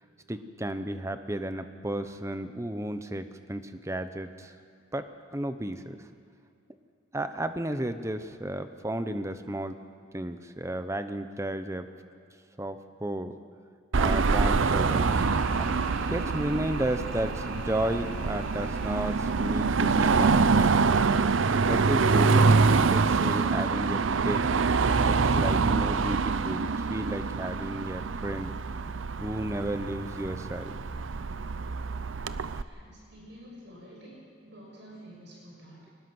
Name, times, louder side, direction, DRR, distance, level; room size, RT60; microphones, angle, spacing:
voice 1, 0.3-4.5 4.9-5.1 5.3-6.0 7.1-9.8 10.1-11.9 12.6-13.3 14.0-15.1 15.6-15.7 16.1-20.7 21.7-24.4 25.0-28.5 29.2-30.8, right 1 dB, 15° right, 9 dB, 0.9 m, -33 dB
Car passing by / Traffic noise roadway noise / Engine, 13.9-32.6, right 4 dB, 80° right, 0.6 m, -25 dB
sound 1, 14.5-21.4, right 1 dB, 45° right, 3.2 m, -47 dB
voice 2, 32.6-35.9, equal, 60° right, -3 dB, 7.1 m, -49 dB
22.5 x 20.0 x 6.2 m, 2.4 s
head